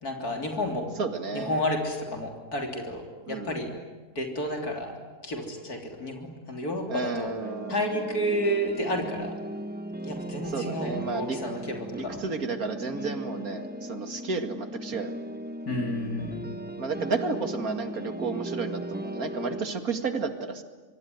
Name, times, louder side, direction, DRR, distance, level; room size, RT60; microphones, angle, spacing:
voice 1, 0.0-0.9 1.3-3.0 3.3-3.7 4.2-4.9 5.2-7.3 7.7-9.3 10.0-11.8 12.0-12.2 15.7-16.4, equal, 85° left, 2 dB, 4.0 m, -31 dB
voice 2, 1.0-1.6 3.3-3.6 6.9-7.9 10.5-11.4 11.9-15.3 16.8-20.6, right 4 dB, 70° right, 7 dB, 2.7 m, -32 dB
sound 1, 7.4-19.7, right 1 dB, 5° right, 1.0 m, -37 dB
26.5 x 23.5 x 9.5 m, 1.3 s
omnidirectional pair, 1.6 m